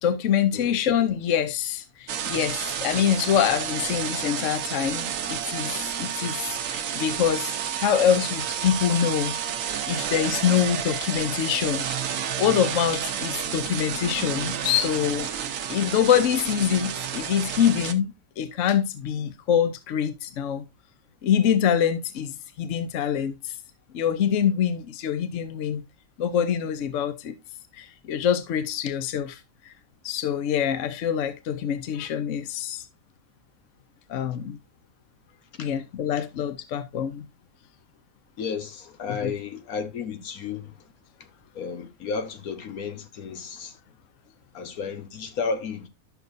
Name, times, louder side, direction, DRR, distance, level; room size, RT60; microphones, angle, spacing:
voice 1, 0.0-9.4 9.9-11.8 12.4-15.3 15.7-20.6 21.2-23.5 23.9-25.8 26.2-27.4 27.7-29.4 29.7-29.8 30.0-32.8 34.1-34.6 35.6-37.3 39.1-39.3, left 9 dB, 65° left, 1.1 m, -25 dB
sound 1, 2.1-17.9, right 8 dB, 70° right, 1.1 m, -30 dB
voice 2, 38.4-40.7 41.5-43.8 44.5-45.9, left 5 dB, 80° left, 1.5 m, -33 dB
11.5 x 6.4 x 2.6 m
omnidirectional pair, 1.5 m